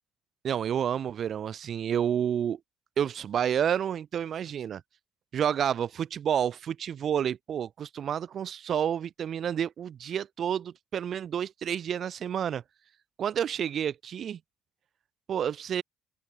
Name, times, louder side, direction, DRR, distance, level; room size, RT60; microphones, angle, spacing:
voice 1, 0.4-2.6 3.0-4.8 5.3-12.6 13.2-14.4 15.3-15.8, right 9 dB, 55° right, 1.6 m, -29 dB
open air
hypercardioid pair, 60°, 0 cm